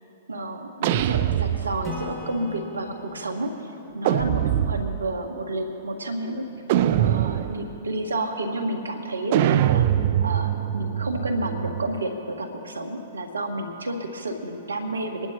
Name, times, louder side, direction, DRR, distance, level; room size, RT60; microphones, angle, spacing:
voice 1, 0.3-6.4 6.9-9.9 10.2-15.3, right 1 dB, 90° right, 4 dB, 1.6 m, -30 dB
sound 1, 0.8-2.1 4.0-5.1 6.7-7.8 9.3-12.0, right 11 dB, 50° right, 0.5 m, -23 dB
Acoustic guitar / Strum, 1.8-5.4, left 2 dB, 5° right, 2.4 m, -41 dB
23.5 x 11.5 x 3.0 m, 3.0 s
hypercardioid pair, 115°, 0 cm